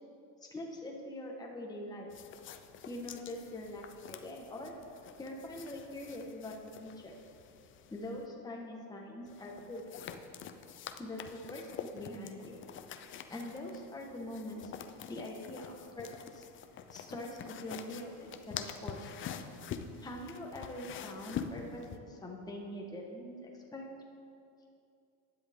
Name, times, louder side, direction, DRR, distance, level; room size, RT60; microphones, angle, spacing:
voice 1, 0.4-2.1 2.8-4.7 5.2-7.1 7.9-9.8 11.0-12.6 13.3-16.5 16.9-19.1 20.0-23.9, left 1 dB, 10° left, -1 dB, 1.4 m, -43 dB
sound 1, 2.1-8.3 9.3-22.0, left 8 dB, 25° left, 0.6 m, -46 dB
15.5 x 10.5 x 3.7 m, 2.5 s
supercardioid pair, 120°, 46 cm